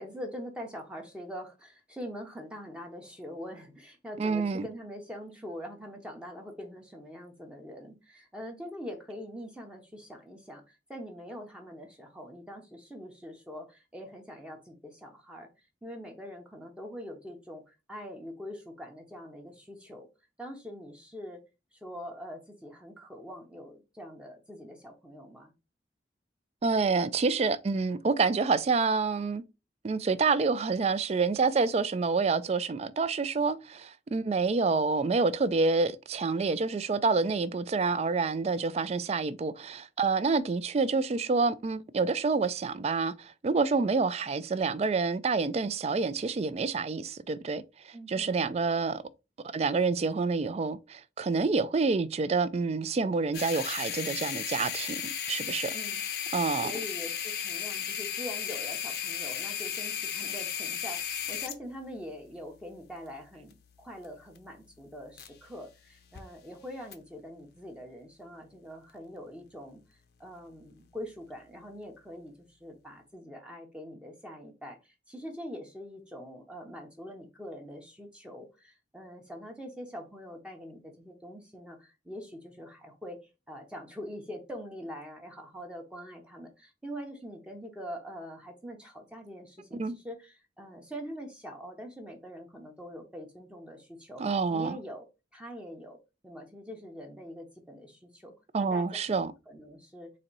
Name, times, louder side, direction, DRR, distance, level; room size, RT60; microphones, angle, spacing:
voice 1, 0.0-20.1 20.4-21.4 21.7-25.5 47.9-48.5 55.7-56.0 56.3-95.0 95.3-96.0 96.2-98.9 99.5-100.1, equal, 5° right, 0.7 m, -44 dB
voice 2, 4.2-4.7 26.6-29.4 29.8-49.0 49.5-55.0 55.3-55.7 56.3-56.7 89.8-89.9 94.2-94.8 98.5-99.3, right 4 dB, 35° right, 0.3 m, -28 dB
sound 1, 53.3-65.6 65.9-66.2 66.9-67.0, left 8 dB, 60° left, 0.6 m, -36 dB
4.2 x 2.6 x 3.9 m
head